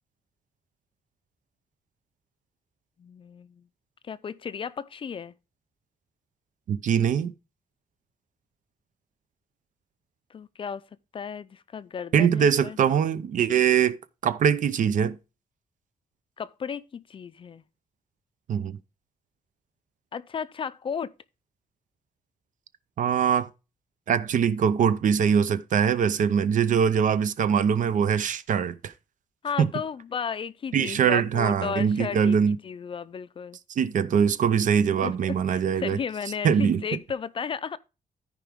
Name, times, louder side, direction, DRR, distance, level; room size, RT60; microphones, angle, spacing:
voice 1, 3.0-3.7 4.0-5.3 10.3-10.8 11.1-12.8 16.4-17.6 20.1-21.1 29.4-33.6 35.0-37.8, left 6 dB, 40° left, 0.4 m, -34 dB
voice 2, 6.7-7.3 12.1-14.0 14.2-15.2 18.5-18.7 23.0-23.5 24.1-28.9 29.6-29.7 30.7-32.6 33.7-36.0 36.4-36.8, right 7 dB, 65° right, 0.6 m, -22 dB
14.0 x 4.9 x 3.5 m
wide cardioid pair, 150°, 14 cm